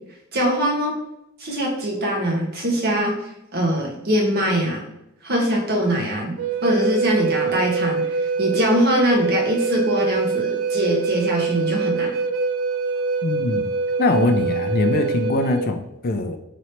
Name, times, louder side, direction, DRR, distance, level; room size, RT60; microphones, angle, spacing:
voice 1, 0.3-0.9 1.4-3.2 3.5-4.9 5.2-6.3 6.6-12.1, equal, 45° right, -1 dB, 1.0 m, -22 dB
Wind instrument woodwind instrument, 6.4-15.7, right 4 dB, 70° right, 0.4 m, -24 dB
voice 2, 13.2-13.7 14.0-16.4, left 2 dB, 40° left, 6 dB, 0.4 m, -22 dB
3.1 x 2.8 x 4.3 m, 0.83 s
head